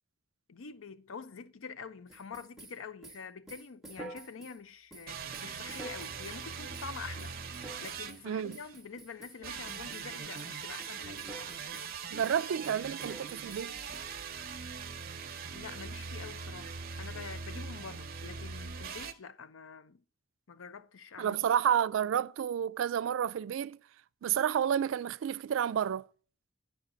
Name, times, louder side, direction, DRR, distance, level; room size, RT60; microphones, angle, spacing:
voice 1, 0.5-7.3 7.8-11.5 15.5-20.0 20.5-21.5, left 5 dB, 90° left, 0.6 m, -46 dB
sound 1, 2.1-4.6 4.9-6.4 6.7-6.9 7.2-8.2 8.5-10.1 10.3-10.5 10.8-11.9 12.2-14.0, right 2 dB, ahead, 1.0 m, -49 dB
sound 2, 5.1-8.8 9.4-19.1, right 5 dB, 50° right, 0.8 m, -41 dB
voice 2, 8.2-8.6 12.1-13.7 21.2-23.8 24.2-26.1, right 9 dB, 75° right, 0.3 m, -30 dB
10.0 x 4.9 x 3.9 m
head